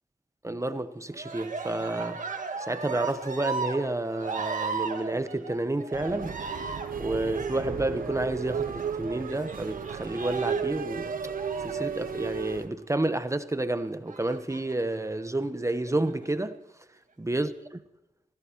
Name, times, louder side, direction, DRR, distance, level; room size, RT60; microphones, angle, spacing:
voice 1, 0.4-2.2 2.7-6.4 7.0-11.1 11.6-16.6 17.2-17.8, right 2 dB, 20° right, 0.9 m, -30 dB
Cheering, 1.1-12.8 14.1-14.9 15.7-16.3, right 4 dB, 65° right, 1.7 m, -36 dB
sound 1, 5.9-12.7, right 7 dB, 80° right, 0.8 m, -35 dB
sound 2, 7.5-9.5, equal, 5° left, 3.5 m, -44 dB
25.0 x 15.5 x 3.0 m
cardioid pair, 70°, 14 cm